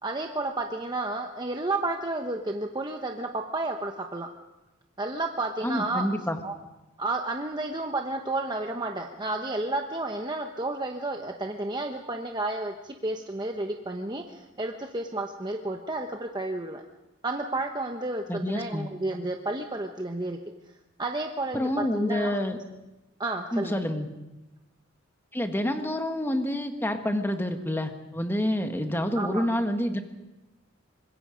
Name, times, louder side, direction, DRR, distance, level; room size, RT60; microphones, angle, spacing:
voice 1, 0.0-4.3 5.0-6.1 6.4-6.5 7.0-16.8 17.2-20.4 21.0-22.4 23.2-23.8 29.1-29.4, right 2 dB, 20° right, 3 dB, 1.0 m, -31 dB
voice 2, 5.6-6.4 18.3-18.9 21.5-22.6 23.5-24.1 25.3-30.0, left 1 dB, 10° left, 6 dB, 1.5 m, -28 dB
25.0 x 21.0 x 5.2 m, 1.0 s
head